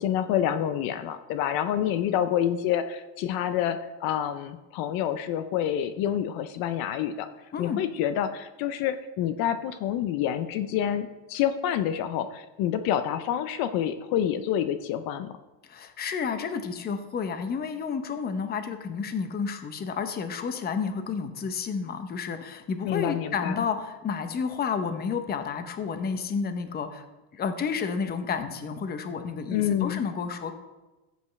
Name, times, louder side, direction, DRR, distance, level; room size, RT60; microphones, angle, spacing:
voice 1, 0.0-7.3 7.6-15.3 22.8-23.6 29.5-30.0, left 10 dB, 60° left, 11 dB, 0.7 m, -28 dB
voice 2, 15.6-27.0 27.3-30.5, left 6 dB, 25° left, 8 dB, 0.8 m, -31 dB
14.0 x 8.1 x 3.2 m, 1.1 s
cardioid pair, 145°, 40 cm